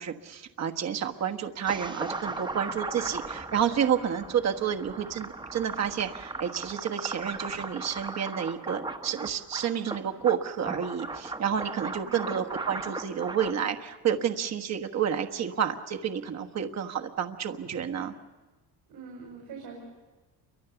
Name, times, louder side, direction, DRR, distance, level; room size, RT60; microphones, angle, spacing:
voice 1, 0.0-18.1, right 8 dB, 45° right, 4 dB, 1.4 m, -30 dB
sound 1, 1.7-13.5, right 3 dB, 10° right, 1.1 m, -37 dB
voice 2, 11.9-12.4 18.9-19.8, right 5 dB, 75° right, -1 dB, 5.5 m, -44 dB
29.0 x 24.0 x 7.0 m, 1.2 s
cardioid pair, 150°, 38 cm